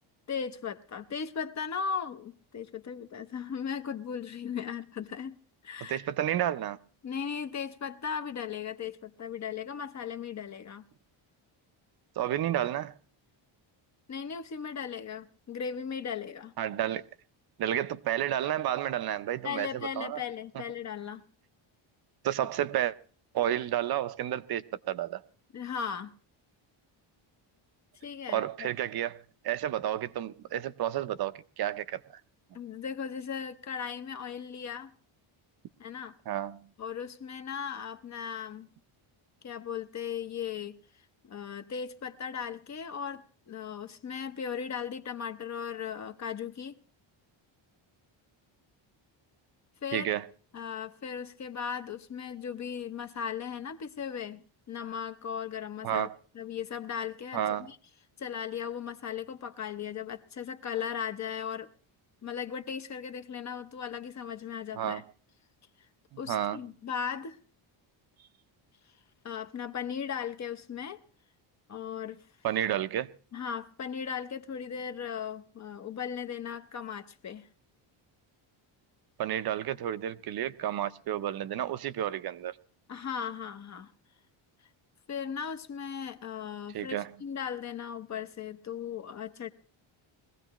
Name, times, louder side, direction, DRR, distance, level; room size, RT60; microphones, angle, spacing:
voice 1, 0.3-5.4 5.6-6.1 7.0-10.8 14.1-16.5 19.4-21.2 25.5-26.1 28.0-28.7 32.5-34.9 35.8-36.1 36.8-38.7 39.4-40.8 41.2-46.8 49.8-50.1 50.5-54.4 54.7-56.1 56.3-57.8 58.2-61.7 62.2-65.0 66.2-67.4 69.2-71.0 71.7-72.2 73.3-77.5 82.9-83.9 85.1-89.5, left 7 dB, 35° left, 0.7 m, -37 dB
voice 2, 5.9-6.8 12.2-12.9 16.6-17.0 17.6-20.2 22.2-22.9 23.3-25.2 28.3-29.2 29.4-32.0 36.3-36.6 49.9-50.3 55.8-56.2 57.3-57.7 64.7-65.0 66.3-66.6 72.4-73.1 79.2-82.6 86.7-87.1, right 11 dB, 50° right, 0.6 m, -31 dB
21.5 x 16.0 x 3.0 m
cardioid pair, 170°, 49 cm